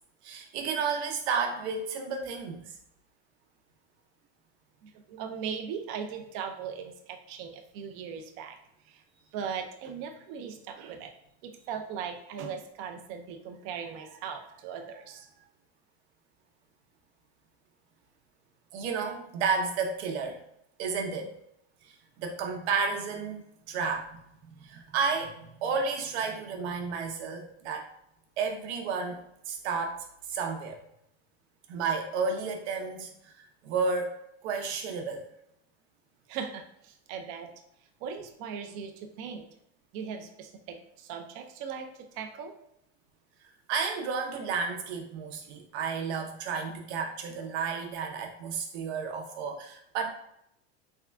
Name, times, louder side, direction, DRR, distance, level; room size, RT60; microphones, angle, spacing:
voice 1, 0.2-2.8 18.7-20.4 20.8-21.4 21.8-23.4 23.7-24.2 24.6-27.9 28.4-30.8 31.7-35.2 43.4-50.1, right 5 dB, 75° right, 3 dB, 0.8 m, -32 dB
voice 2, 4.8-8.6 8.9-9.0 9.3-11.1 11.4-15.4 36.3-37.5 38.0-39.5 39.9-42.5, right 7 dB, 40° right, 4 dB, 0.4 m, -39 dB
3.5 x 2.2 x 3.4 m, 0.76 s
supercardioid pair, 160°, 33 cm